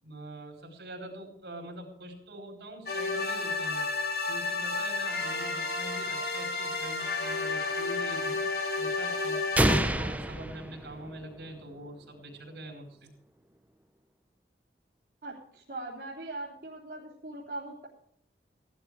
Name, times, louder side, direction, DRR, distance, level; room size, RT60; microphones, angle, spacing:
voice 1, 0.0-3.8 4.2-8.4 8.8-9.4 9.8-13.1, right 1 dB, 75° right, 4 dB, 4.7 m, -44 dB
sound 1, 2.9-9.8, left 3 dB, 60° left, 3.4 m, -31 dB
sound 2, 9.6-11.5, right 1 dB, 10° right, 0.7 m, -28 dB
voice 2, 15.2-17.9, right 2 dB, 55° right, -5 dB, 3.3 m, -40 dB
16.5 x 12.0 x 4.8 m, 0.69 s
head